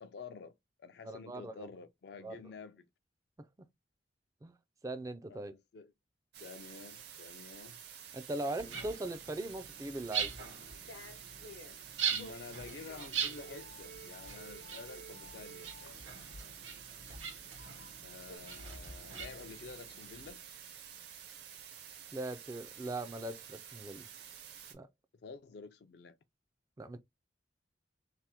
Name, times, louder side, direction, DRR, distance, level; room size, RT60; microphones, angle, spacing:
voice 1, 0.0-2.8 5.3-5.9 6.4-7.8 8.4-9.0 12.1-16.1 18.0-20.4 25.2-26.2, left 4 dB, 60° left, 0.4 m, -50 dB
voice 2, 1.1-1.7 2.2-2.4 3.4-3.5 4.4-4.5 4.8-5.5 8.1-10.3 22.1-24.1 24.7-24.9 26.8-27.0, right 2 dB, 20° right, 0.3 m, -40 dB
sound 1, 6.3-24.7, right 9 dB, 60° right, 0.7 m, -51 dB
sound 2, 8.6-20.3, right 7 dB, 90° right, 1.0 m, -42 dB
sound 3, 10.9-11.8 12.1-16.0 17.5-18.4, left 1 dB, 85° left, 0.8 m, -53 dB
3.3 x 2.1 x 2.8 m
head